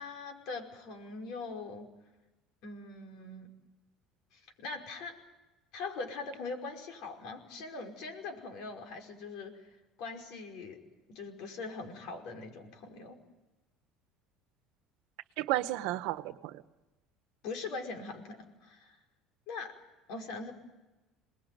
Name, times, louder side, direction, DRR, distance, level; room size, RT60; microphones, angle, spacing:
voice 1, 0.0-1.9 2.6-3.5 4.3-5.1 5.7-10.8 11.1-13.2 17.4-19.0 19.5-19.8 20.1-20.5, left 3 dB, 60° left, 5.3 m, -42 dB
voice 2, 15.4-16.6, right 16 dB, 75° right, 1.3 m, -32 dB
28.5 x 20.5 x 9.3 m
cardioid pair, 165°, 0 cm